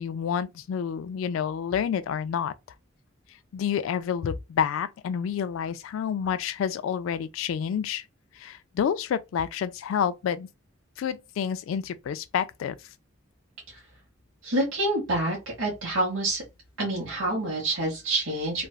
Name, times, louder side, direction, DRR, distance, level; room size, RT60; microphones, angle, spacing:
voice 1, 0.0-2.5 3.5-8.0 8.4-10.5 11.0-12.8, left 8 dB, 80° left, 0.3 m, -29 dB
voice 2, 14.4-16.4 16.8-18.7, right 1 dB, 85° right, 1.3 m, -27 dB
3.2 x 2.3 x 2.3 m
head